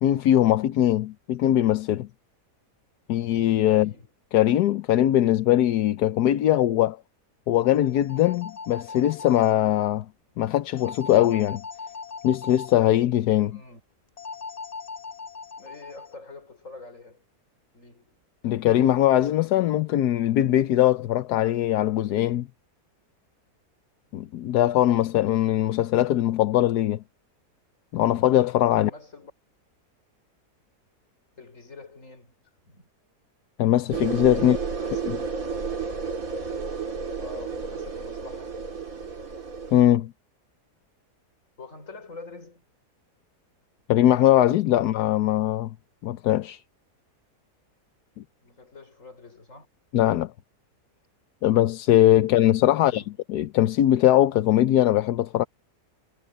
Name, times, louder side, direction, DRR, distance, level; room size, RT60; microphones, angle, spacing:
voice 1, 0.0-2.1 3.1-3.9 4.3-7.0 7.5-10.1 10.4-11.6 12.2-13.6 18.4-22.5 24.1-27.0 27.9-28.9 33.6-34.6 35.0-35.2 39.7-40.1 43.9-45.7 46.0-46.6 49.9-50.3 51.4-53.0 53.3-55.4, left 12 dB, 80° left, 1.3 m, -21 dB
voice 2, 3.7-4.1 13.5-13.8 15.6-17.2 17.7-18.2 28.7-29.3 31.4-32.3 32.6-32.9 34.4-35.0 37.2-38.6 41.6-42.6 48.4-49.7 52.2-52.3 52.8-53.1, left 3 dB, 50° left, 5.2 m, -45 dB
sound 1, 7.5-9.5 10.8-12.8 14.2-16.1, left 4 dB, 30° left, 0.8 m, -39 dB
sound 2, 33.9-39.8, right 5 dB, 60° right, 2.7 m, -32 dB
omnidirectional pair, 1.7 m